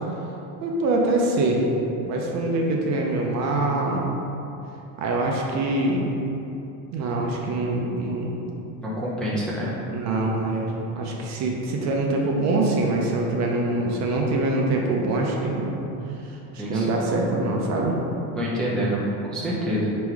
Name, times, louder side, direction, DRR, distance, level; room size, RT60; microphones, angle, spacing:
voice 1, 0.6-1.6 2.1-4.0 5.0-6.0 6.9-8.3 9.3-9.4 9.9-10.6 11.0-15.7 16.5-18.0, right 2 dB, 45° right, -1 dB, 0.6 m, -24 dB
voice 2, 8.8-9.7 16.6-16.9 18.4-19.9, equal, ahead, -8 dB, 0.4 m, -26 dB
3.6 x 3.0 x 4.6 m, 2.9 s
cardioid pair, 145°, 39 cm